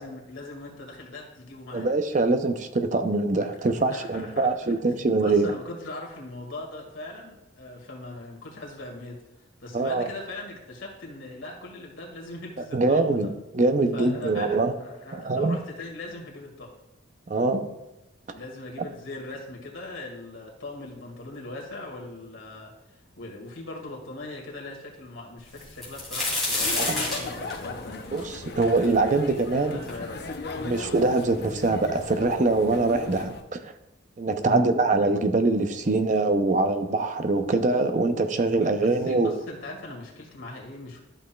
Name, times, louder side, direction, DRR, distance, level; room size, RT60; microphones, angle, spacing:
voice 1, 0.0-1.9 3.6-4.7 5.2-9.2 9.6-13.3 13.9-16.7 18.3-28.0 29.7-30.7 34.4-34.6 38.6-41.0, left 2 dB, 75° left, -1 dB, 2.1 m, -40 dB
voice 2, 1.7-5.5 9.7-10.1 12.7-14.7 15.2-15.6 17.3-17.7 26.8-27.0 28.1-29.8 30.6-33.6 34.2-39.4, right 3 dB, 40° right, 8 dB, 0.5 m, -23 dB
sound 1, 25.6-29.4 29.9-30.0 30.8-30.9 31.1-31.8 32.7-32.8 33.2-33.4, left 2 dB, ahead, 2.8 m, -29 dB
sound 2, 26.5-33.4, left 3 dB, 50° left, 0.6 m, -37 dB
12.5 x 6.0 x 2.3 m, 0.96 s
head